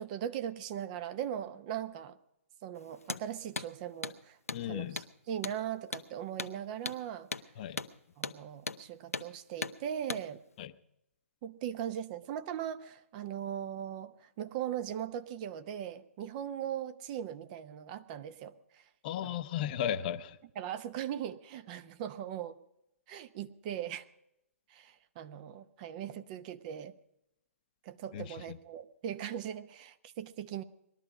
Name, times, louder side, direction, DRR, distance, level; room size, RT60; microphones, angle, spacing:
voice 1, 0.0-2.2 2.6-4.4 4.7-7.3 8.2-10.4 11.4-18.8 19.2-19.3 20.6-22.6 23.1-24.0 24.7-26.9 27.8-30.6, right 10 dB, 35° right, 11 dB, 0.8 m, -39 dB
Hammer, 3.0-3.2 3.6-3.7 4.0-4.2 4.5-4.6 5.0-5.1 5.4-5.6 5.9-6.1 6.4-6.5 6.9-7.0 7.3-7.5 7.8-7.9 8.2-8.4 8.7-8.8 9.1-9.3 9.6-9.8 10.1-10.2, left 4 dB, 85° left, 0.8 m, -37 dB
voice 2, 4.5-5.0 7.6-7.8 10.6-10.7 19.0-20.4 28.1-28.6, left 10 dB, 35° left, 12 dB, 0.7 m, -35 dB
20.0 x 12.5 x 5.0 m, 0.84 s
figure-of-eight pair, 130°, 8 cm